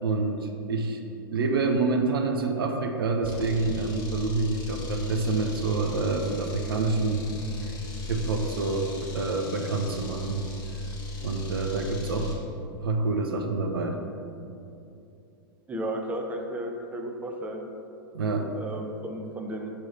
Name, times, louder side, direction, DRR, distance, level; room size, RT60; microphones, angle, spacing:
voice 1, 0.0-1.0 1.3-7.8 8.1-10.4 11.2-12.3 12.8-14.0 18.1-18.5, right 3 dB, 75° right, 4 dB, 0.6 m, -27 dB
sound 1, 3.2-12.4, left 3 dB, 35° left, 1.3 m, -37 dB
voice 2, 15.7-17.6 18.5-19.7, right 1 dB, 10° right, 1 dB, 0.7 m, -34 dB
7.3 x 3.1 x 5.5 m, 2.7 s
hypercardioid pair, 100°, 12 cm